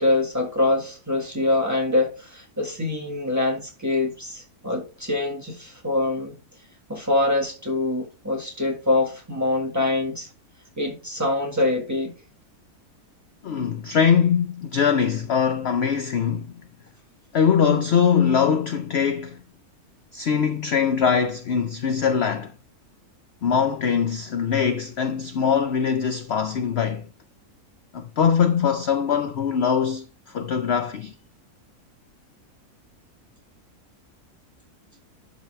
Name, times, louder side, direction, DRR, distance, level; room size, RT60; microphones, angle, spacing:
voice 1, 0.0-6.4 6.9-10.3 10.8-12.1, left 2 dB, 10° right, 1.6 m, -24 dB
voice 2, 13.4-16.5 17.3-19.4 20.1-22.5 23.4-27.1 27.9-31.1, left 7 dB, 60° left, 0.7 m, -22 dB
12.0 x 4.1 x 3.2 m
omnidirectional pair, 1.6 m